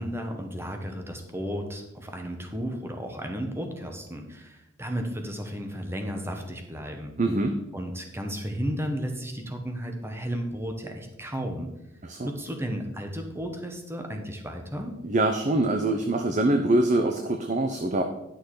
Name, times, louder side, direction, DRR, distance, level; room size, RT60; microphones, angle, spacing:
voice 1, 0.0-7.1 7.7-11.7 12.2-15.0, equal, 10° right, 4 dB, 1.3 m, -33 dB
voice 2, 7.2-7.6 12.0-12.3 15.0-18.0, right 2 dB, 40° right, 5 dB, 0.7 m, -24 dB
11.0 x 6.4 x 4.8 m, 0.91 s
head